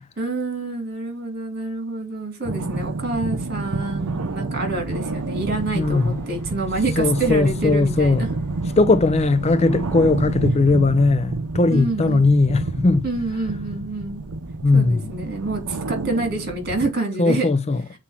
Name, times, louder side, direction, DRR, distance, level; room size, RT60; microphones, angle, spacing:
voice 1, 0.2-8.4 11.7-12.3 13.0-14.2 14.7-17.5, right 2 dB, 45° right, 3.0 m, -27 dB
sound 1, 2.4-16.9, right 3 dB, 80° right, 0.6 m, -29 dB
sound 2, 5.1-10.5, equal, 10° left, 4.0 m, -40 dB
voice 2, 5.7-6.2 7.0-8.2 8.8-13.0 14.6-15.1 17.2-17.8, left 3 dB, 30° left, 0.4 m, -18 dB
7.4 x 4.4 x 5.8 m
head